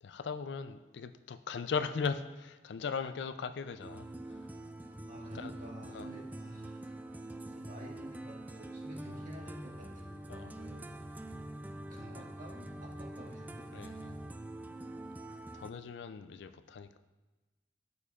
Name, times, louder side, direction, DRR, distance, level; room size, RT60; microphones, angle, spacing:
voice 1, 0.0-4.5 5.3-5.5 5.9-6.1 10.3-10.5 13.7-14.1 15.5-17.0, left 5 dB, 80° left, 0.4 m, -38 dB
sound 1, 3.8-15.7, right 1 dB, 10° right, 0.3 m, -45 dB
voice 2, 5.1-10.9 11.9-13.9, equal, 45° right, 1.8 m, -50 dB
12.5 x 6.9 x 2.4 m
head